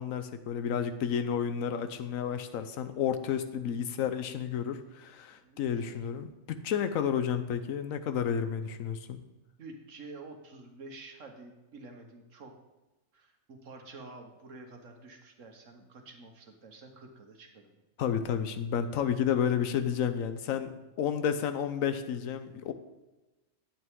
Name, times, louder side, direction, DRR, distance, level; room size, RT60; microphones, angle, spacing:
voice 1, 0.0-9.2 18.0-22.7, left 8 dB, 90° left, 10 dB, 1.1 m, -31 dB
voice 2, 1.2-2.0 2.8-3.0 5.3-6.0 9.6-12.5 13.1-17.7 22.1-22.2, right 3 dB, 70° right, 4 dB, 1.5 m, -49 dB
11.0 x 8.4 x 3.7 m, 1.1 s
omnidirectional pair, 1.4 m